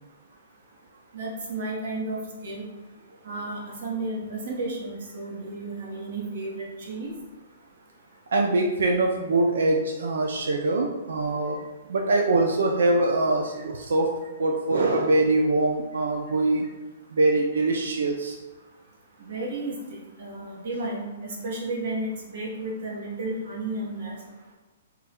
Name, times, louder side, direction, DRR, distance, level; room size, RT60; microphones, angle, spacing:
voice 1, 1.1-2.6 3.2-7.1 13.5-13.6 19.2-24.2, right 2 dB, 45° right, -3 dB, 1.1 m, -33 dB
voice 2, 8.3-14.1 14.4-16.7 17.1-18.4, right 2 dB, 85° right, 1 dB, 0.5 m, -23 dB
3.6 x 2.3 x 4.3 m, 1.2 s
hypercardioid pair, 175°, 0 cm